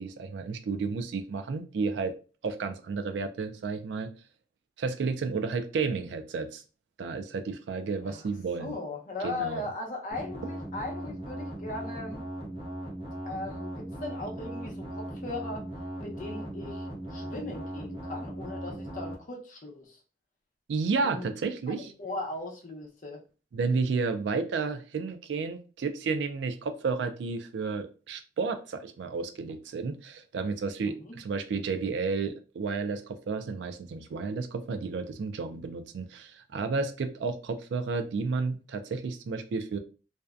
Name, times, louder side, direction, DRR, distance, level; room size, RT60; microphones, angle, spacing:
voice 1, 0.0-2.1 2.4-4.1 4.8-6.6 7.0-8.7 9.2-9.6 20.7-21.9 23.5-39.8, right 4 dB, 75° right, 8 dB, 0.3 m, -32 dB
voice 2, 8.6-12.2 13.2-15.6 16.0-20.0 21.0-21.3 21.8-23.2 30.8-31.1, left 2 dB, 45° left, 0 dB, 0.6 m, -38 dB
sound 1, 10.1-19.1, right 1 dB, 30° right, 0.6 m, -38 dB
2.6 x 2.1 x 2.3 m, 0.35 s
head